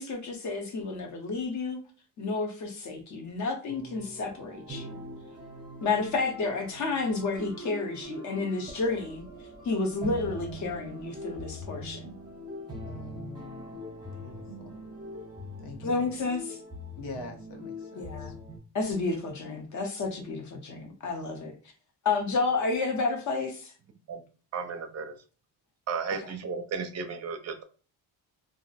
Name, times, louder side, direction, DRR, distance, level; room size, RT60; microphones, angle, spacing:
voice 1, 0.0-1.8 2.2-5.0 5.8-9.2 9.6-12.1 15.8-16.6 18.0-18.3 18.7-21.5 22.0-23.7, left 3 dB, 45° left, 0.7 m, -31 dB
sound 1, 3.7-18.6, equal, 10° right, 0.8 m, -42 dB
voice 2, 12.8-13.8 14.1-14.7 15.6-16.1 17.0-18.3, left 3 dB, 80° left, 1.0 m, -44 dB
voice 3, 24.5-25.2 25.9-27.6, right 5 dB, 40° right, 0.5 m, -34 dB
2.5 x 2.0 x 3.9 m
cardioid pair, 180°, 41 cm